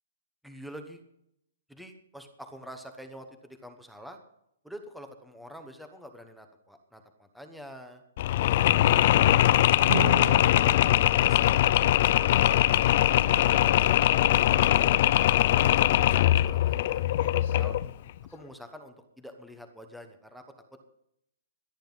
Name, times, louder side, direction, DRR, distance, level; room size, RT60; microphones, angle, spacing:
voice 1, 0.4-1.0 1.7-4.2 4.6-8.0 15.4-17.8 18.3-20.5, equal, ahead, 6 dB, 1.0 m, -46 dB
Mechanisms, 8.2-17.9, left 13 dB, 35° left, 0.4 m, -22 dB
sound 1, 9.9-12.0, right 5 dB, 60° right, 2.7 m, -35 dB
18.0 x 11.5 x 3.9 m, 0.76 s
hypercardioid pair, 175°, 0 cm